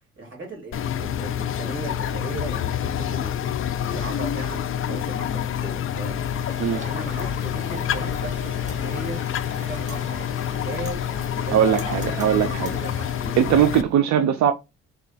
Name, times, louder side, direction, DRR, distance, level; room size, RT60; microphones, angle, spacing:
voice 1, 0.2-3.6 3.9-9.2 9.6-11.0 11.3-13.4, right 2 dB, 40° right, 2.5 m, -37 dB
sound 1, 0.7-13.8, left 10 dB, 45° left, 0.4 m, -27 dB
Wind, 5.8-14.0, right 2 dB, 25° right, 1.4 m, -42 dB
voice 2, 11.5-12.7 13.4-14.5, right 9 dB, 70° right, 0.5 m, -20 dB
4.0 x 2.3 x 4.0 m
cardioid pair, 90°, 30 cm